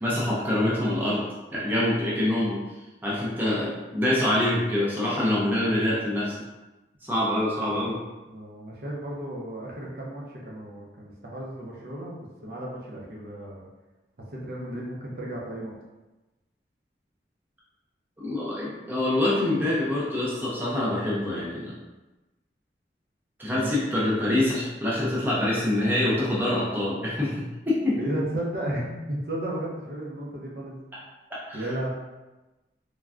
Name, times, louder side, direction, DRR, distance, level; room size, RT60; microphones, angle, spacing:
voice 1, 0.0-1.2 1.5-2.6 3.0-6.4 7.0-8.0 18.2-21.7 23.4-28.0 31.5-31.7, left 1 dB, 10° right, -7 dB, 0.5 m, -25 dB
voice 2, 8.3-13.7 14.3-15.7 23.5-23.7 28.0-30.8 31.5-31.9, right 1 dB, 60° right, -4 dB, 0.6 m, -34 dB
3.3 x 2.2 x 2.4 m, 1.1 s
head